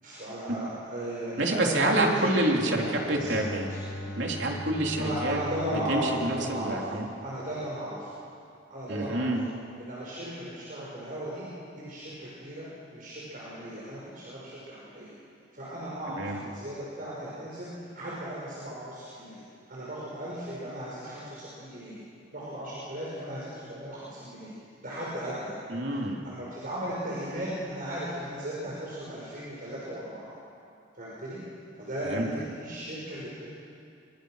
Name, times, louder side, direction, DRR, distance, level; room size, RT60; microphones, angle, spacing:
voice 1, 0.0-4.2 5.0-6.9 7.2-8.1 8.7-9.3 9.8-11.5 11.8-15.1 15.5-17.7 17.9-19.4 19.7-21.9 22.3-24.5 24.8-25.5 26.2-30.3 30.9-31.4 31.8-33.5, right 1 dB, 50° right, -7 dB, 6.1 m, -36 dB
voice 2, 1.4-3.7 4.2-5.4 5.9-7.1 8.9-9.4 16.1-16.4 25.7-26.2 32.0-32.2, right 1 dB, 70° right, 0 dB, 3.5 m, -27 dB
Bowed string instrument, 2.8-7.8, left 1 dB, 80° left, 2.8 m, -41 dB
24.0 x 24.0 x 6.6 m, 2.4 s
head